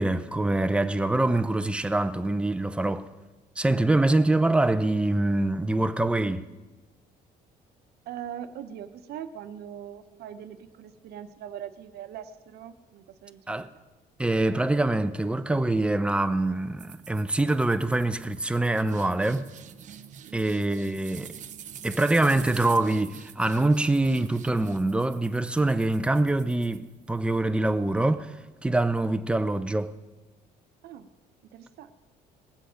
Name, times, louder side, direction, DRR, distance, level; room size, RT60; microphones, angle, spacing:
voice 1, 0.0-3.1 3.6-6.5 13.5-13.7 14.2-19.5 20.3-21.3 21.8-28.3 28.6-29.9, right 2 dB, 5° right, 0.5 m, -24 dB
voice 2, 8.1-13.8 20.3-20.5 30.8-31.1 31.5-31.9, right 9 dB, 70° right, 0.9 m, -41 dB
sound 1, 16.8-27.3, right 8 dB, 45° right, 0.7 m, -46 dB
20.0 x 7.8 x 5.1 m
cardioid pair, 110°, 17 cm